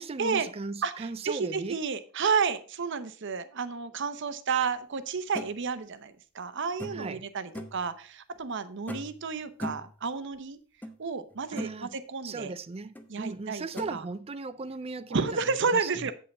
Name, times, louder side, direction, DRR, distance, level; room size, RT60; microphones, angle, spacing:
voice 1, 0.0-1.8 6.9-7.2 11.5-11.9 12.2-15.3 15.7-15.9, right 3 dB, 30° right, 0.4 m, -37 dB
voice 2, 0.8-10.6 11.0-12.5 13.1-13.6 13.9-14.1 15.1-16.1, right 5 dB, 60° right, 0.7 m, -31 dB
sound 1, 5.3-5.5 6.8-7.1 7.5-7.8 8.9-9.2 9.6-9.9 10.8-10.9 11.3-11.8 12.9-13.1 13.8-13.9, left 1 dB, 10° left, 0.8 m, -38 dB
8.3 x 5.5 x 5.2 m
head